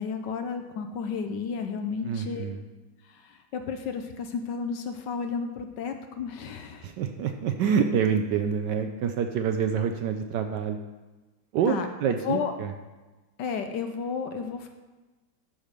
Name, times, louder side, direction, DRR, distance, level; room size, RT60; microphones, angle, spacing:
voice 1, 0.0-2.5 3.0-6.9 11.7-12.5 13.4-14.7, left 6 dB, 70° left, 6 dB, 1.2 m, -32 dB
voice 2, 2.0-2.6 6.8-10.8 11.5-12.7, right 7 dB, 75° right, 7 dB, 1.1 m, -27 dB
11.5 x 4.9 x 5.1 m, 1.2 s
omnidirectional pair, 2.2 m